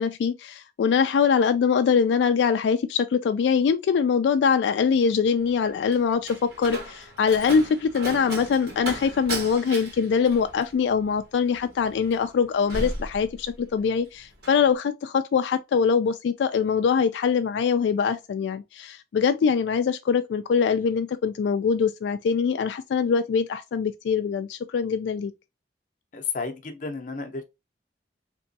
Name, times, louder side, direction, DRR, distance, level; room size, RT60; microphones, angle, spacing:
voice 1, 0.0-25.3, left 6 dB, 85° left, 0.3 m, -23 dB
Slam, 5.4-13.9 14.2-14.6, right 1 dB, 60° right, 1.6 m, -36 dB
voice 2, 26.1-27.4, left 5 dB, 45° left, 0.6 m, -32 dB
3.4 x 2.9 x 2.7 m
head